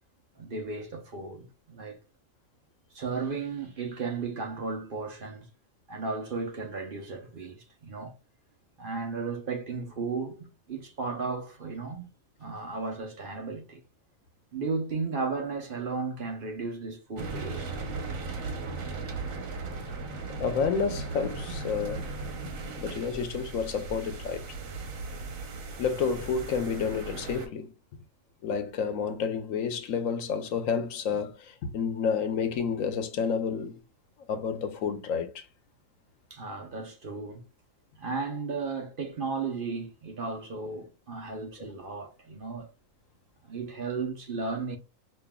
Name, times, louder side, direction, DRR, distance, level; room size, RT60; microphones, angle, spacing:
voice 1, 0.4-2.0 2.9-5.5 5.9-8.2 8.8-12.1 12.4-13.8 14.5-17.8 36.3-37.4 38.0-42.7 43.4-44.8, right 4 dB, 50° right, 0.8 m, -35 dB
sound 1, 17.2-27.5, right 3 dB, 80° right, 1.3 m, -37 dB
voice 2, 20.4-22.1 22.8-24.4 25.8-27.7 28.4-33.8 34.3-35.5 41.6-41.7, left 6 dB, 80° left, 1.1 m, -30 dB
5.3 x 2.6 x 2.2 m
omnidirectional pair, 1.4 m